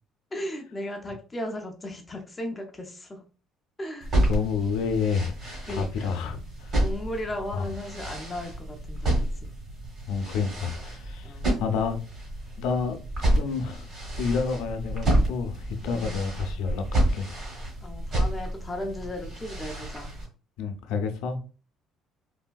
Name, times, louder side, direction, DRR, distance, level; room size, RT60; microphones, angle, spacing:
voice 1, 0.3-3.2 3.8-4.1 5.6-6.2 6.8-9.5 11.2-11.5 15.8-16.2 17.8-20.1, left 1 dB, 15° left, 0.5 m, -36 dB
sound 1, 4.0-20.3, right 1 dB, 40° right, 1.2 m, -29 dB
voice 2, 4.3-6.8 7.5-7.7 10.1-12.0 12.6-13.9 14.1-17.3 20.6-21.4, left 5 dB, 90° left, 0.5 m, -29 dB
3.3 x 2.6 x 2.2 m
cardioid pair, 170°, 0 cm